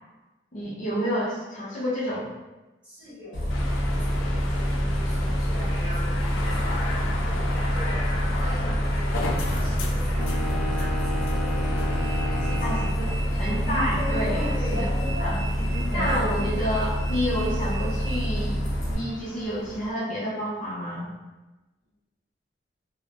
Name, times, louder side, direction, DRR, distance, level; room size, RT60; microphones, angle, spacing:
voice 1, 0.5-2.3 12.6-13.1 13.4-14.9 15.2-15.4 15.9-18.6 18.9-21.1, equal, 40° left, -7 dB, 0.6 m, -29 dB
voice 2, 2.8-3.4 3.9-8.0 8.4-13.4 14.3-14.8, left 1 dB, 5° right, -11 dB, 1.1 m, -43 dB
Bus, 3.3-18.9, equal, 65° left, 1.0 m, -26 dB
sound 1, 3.5-19.9, left 2 dB, 90° left, 0.4 m, -37 dB
sound 2, 10.1-13.0, left 1 dB, 70° right, 0.4 m, -34 dB
2.6 x 2.0 x 3.2 m, 1.1 s
head